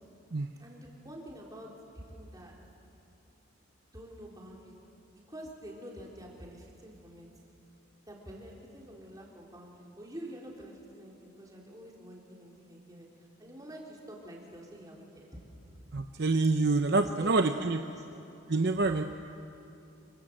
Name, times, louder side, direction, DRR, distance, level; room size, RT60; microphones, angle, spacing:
voice 1, 0.6-2.5 3.9-4.8 5.1-7.3 8.1-13.1 13.4-15.4 15.7-16.0 16.9-18.0, equal, 15° right, -2 dB, 4.1 m, -47 dB
voice 2, 15.9-17.8 18.5-19.0, right 3 dB, 50° right, 7 dB, 0.7 m, -26 dB
27.5 x 26.0 x 7.7 m, 2.7 s
head